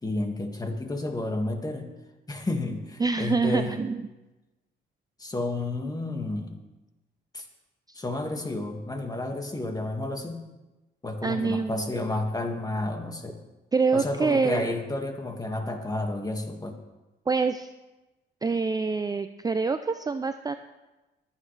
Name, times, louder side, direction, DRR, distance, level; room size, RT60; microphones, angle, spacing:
voice 1, 0.0-1.9 2.3-3.7 5.2-6.6 7.3-7.5 7.9-10.4 11.0-13.4 13.9-16.8, left 2 dB, 20° left, 4 dB, 1.9 m, -31 dB
voice 2, 3.0-4.1 11.2-11.9 13.7-14.7 17.3-17.7 18.4-20.5, right 4 dB, 20° right, 9 dB, 0.5 m, -26 dB
23.0 x 9.3 x 3.3 m, 1.1 s
cardioid pair, 90°, 20 cm